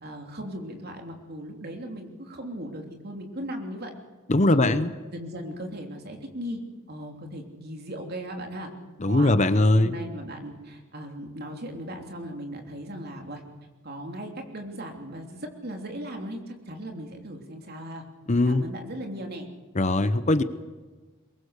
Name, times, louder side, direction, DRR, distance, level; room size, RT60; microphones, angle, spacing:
voice 1, 0.0-3.9 4.4-4.8 5.1-6.6 6.9-8.7 9.1-13.4 13.8-18.0 18.4-19.5, equal, 50° right, 3 dB, 3.2 m, -37 dB
voice 2, 4.3-4.9 9.0-9.9 18.3-18.6 19.8-20.4, left 2 dB, 35° left, 12 dB, 0.8 m, -20 dB
23.0 x 21.0 x 6.6 m, 1.3 s
head